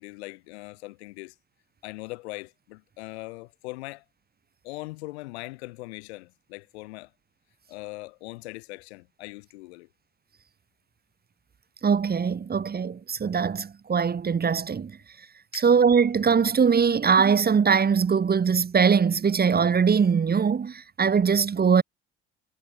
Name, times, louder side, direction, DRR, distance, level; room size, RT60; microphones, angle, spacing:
voice 1, 0.0-1.3 1.8-4.0 4.6-7.1 7.7-9.9 15.5-15.7, left 22 dB, 90° left, 2.1 m, -40 dB
voice 2, 11.8-14.9 15.5-21.8, right 6 dB, 30° right, 1.1 m, -21 dB
hypercardioid pair, 65°, 31 cm